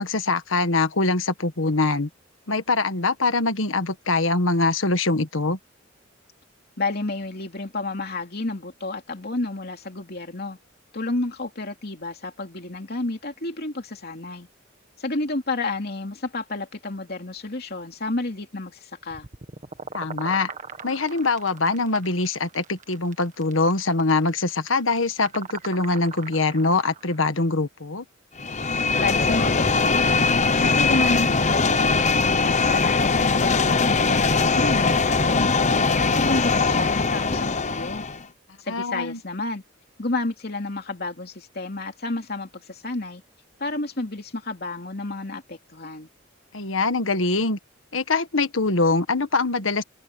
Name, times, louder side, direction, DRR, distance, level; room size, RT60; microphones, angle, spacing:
voice 1, 0.0-2.1 2.5-5.6 19.9-20.5 20.8-28.1 38.7-39.2 46.5-47.6 47.9-49.8, left 3 dB, 75° left, 1.6 m, -23 dB
voice 2, 6.8-10.6 10.9-14.5 15.0-19.3 29.0-30.3 30.6-35.6 36.0-38.0 38.6-39.6 40.0-43.2 43.6-46.1, left 2 dB, 50° left, 2.9 m, -30 dB
sound 1, 19.1-27.2, right 5 dB, 40° right, 1.8 m, -40 dB
sound 2, 28.4-38.2, left 4 dB, 35° left, 1.0 m, -21 dB
open air
head